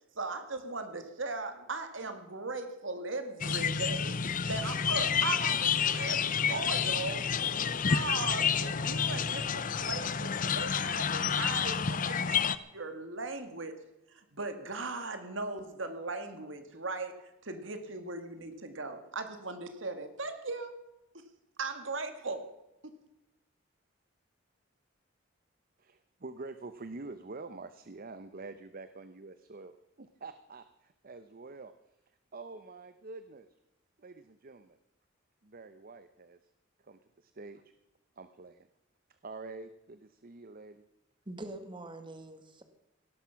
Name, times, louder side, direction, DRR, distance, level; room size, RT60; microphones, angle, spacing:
voice 1, 0.2-4.2 4.5-13.7 14.1-20.7 21.1-21.2 21.6-22.5 22.8-22.9, right 3 dB, 75° right, 8 dB, 2.0 m, -38 dB
sound 1, 3.4-12.6, left 7 dB, 45° left, 0.7 m, -29 dB
voice 2, 25.8-31.7 32.3-33.5 34.0-34.8 35.4-36.4 36.8-37.6 38.2-38.7 39.2-40.8, right 3 dB, 50° right, 11 dB, 0.8 m, -46 dB
voice 3, 41.2-42.6, right 2 dB, 25° right, 7 dB, 1.7 m, -44 dB
17.5 x 12.0 x 5.8 m, 0.91 s
head